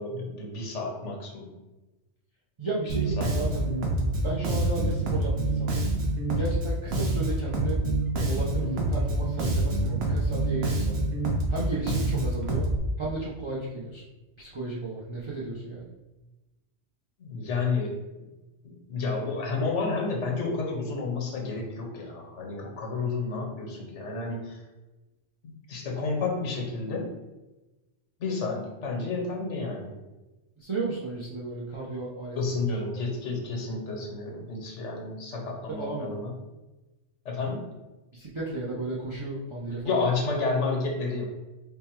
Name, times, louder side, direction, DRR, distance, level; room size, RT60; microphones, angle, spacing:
voice 1, 0.0-1.6 3.2-3.3 17.2-18.3 18.6-24.6 25.4-27.1 28.2-29.9 32.4-36.3 37.2-37.7 39.8-41.3, left 3 dB, 85° left, 1 dB, 1.2 m, -31 dB
voice 2, 2.6-3.7 4.1-5.8 6.3-7.8 8.1-11.0 11.5-12.7 13.0-14.0 14.4-15.9 30.6-32.7 35.8-36.1 38.1-40.1, right 2 dB, 35° right, -6 dB, 0.5 m, -34 dB
Bass guitar, 2.9-12.8, right 2 dB, 60° right, 0.9 m, -27 dB
3.6 x 2.1 x 4.4 m, 1.1 s
omnidirectional pair, 1.2 m